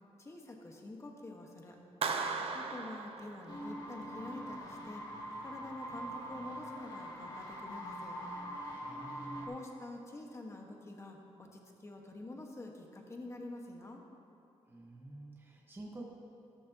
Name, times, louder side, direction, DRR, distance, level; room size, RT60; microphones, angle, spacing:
voice 1, 0.2-1.8 2.5-8.2 9.5-14.0, left 2 dB, 25° left, 1 dB, 1.4 m, -47 dB
Clapping, 2.0-3.9, right 5 dB, 65° right, 0.8 m, -37 dB
sound 1, 3.5-9.5, equal, 40° left, 2.5 m, -43 dB
voice 2, 8.8-9.5 14.7-16.1, right 2 dB, 20° right, -2 dB, 1.3 m, -49 dB
13.0 x 12.5 x 2.9 m, 2.8 s
cardioid pair, 105°, 11 cm